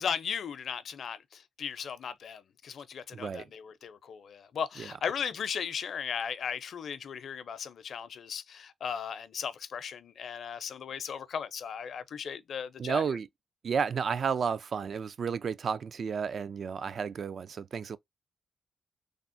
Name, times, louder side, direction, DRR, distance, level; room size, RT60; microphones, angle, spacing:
voice 1, 0.0-13.0, left 7 dB, 70° left, 0.5 m, -37 dB
voice 2, 3.1-3.5 4.8-4.9 12.8-13.3 13.6-18.0, right 6 dB, 60° right, 0.3 m, -32 dB
3.4 x 2.0 x 2.5 m
cardioid pair, 75°, 0 cm